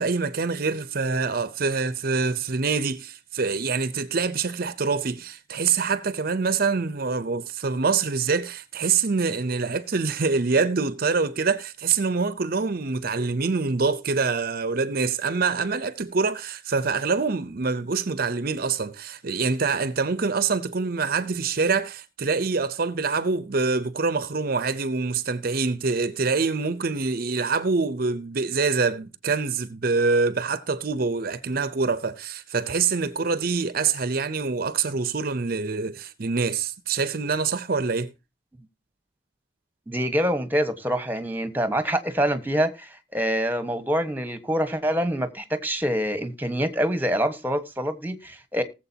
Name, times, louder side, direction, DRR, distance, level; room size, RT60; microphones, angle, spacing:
voice 1, 0.0-38.1, right 4 dB, 50° right, 0.7 m, -25 dB
voice 2, 39.9-48.6, equal, 10° right, 1.3 m, -25 dB
19.0 x 7.6 x 2.8 m
head